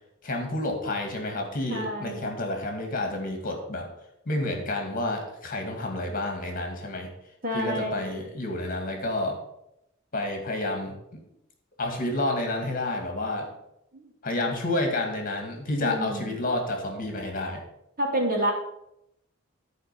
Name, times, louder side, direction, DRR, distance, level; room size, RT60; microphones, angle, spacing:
voice 1, 0.2-3.9 4.3-7.1 7.5-9.4 10.1-10.9 11.8-13.5 14.2-17.6, left 2 dB, 45° left, 3 dB, 2.1 m, -29 dB
voice 2, 1.7-2.3 7.4-8.0 13.9-14.4 15.8-16.4 18.0-18.5, equal, 45° right, -1 dB, 2.7 m, -29 dB
11.0 x 5.1 x 6.9 m, 0.82 s
head